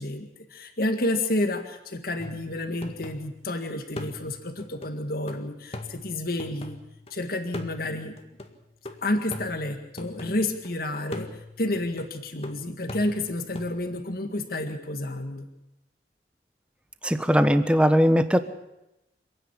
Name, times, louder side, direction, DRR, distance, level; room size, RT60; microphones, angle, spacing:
voice 1, 0.0-6.8 7.1-8.2 9.0-15.5, left 1 dB, 55° left, 6 dB, 1.9 m, -30 dB
sound 1, 2.2-3.5 4.0-7.1 7.5-10.7 11.1-13.8, left 1 dB, 35° left, 1.9 m, -41 dB
voice 2, 17.0-18.4, equal, 5° right, 10 dB, 1.2 m, -19 dB
27.5 x 10.0 x 10.0 m, 0.90 s
head